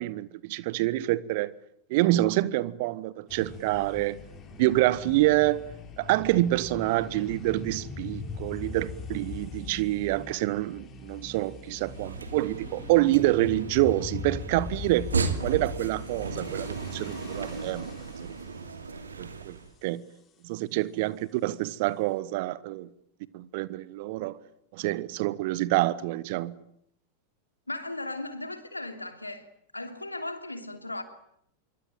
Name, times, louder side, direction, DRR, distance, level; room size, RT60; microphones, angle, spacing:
voice 1, 0.0-1.5 1.9-4.2 4.6-5.6 6.0-17.9 19.2-20.0 20.4-22.9 23.3-24.4 24.7-26.5, right 17 dB, 50° right, 1.4 m, -27 dB
sound 1, 3.3-18.5, left 5 dB, 30° left, 6.1 m, -41 dB
sound 2, 11.8-19.7, right 4 dB, 75° right, 2.7 m, -35 dB
voice 2, 27.7-29.5 29.7-31.0, left 2 dB, 85° left, 3.1 m, -36 dB
26.5 x 23.5 x 9.1 m
figure-of-eight pair, 90°, 0 cm